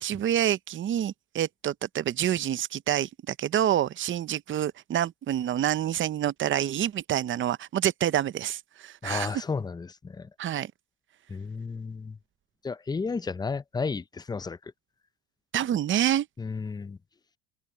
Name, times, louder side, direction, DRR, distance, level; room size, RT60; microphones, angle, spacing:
voice 1, 0.0-9.3 10.4-10.7 15.5-16.3, right 11 dB, 35° right, 0.7 m, -27 dB
voice 2, 9.0-10.3 11.3-12.2 12.6-14.7 16.4-17.0, left 4 dB, 10° left, 0.5 m, -33 dB
supercardioid pair, 100°, 35 cm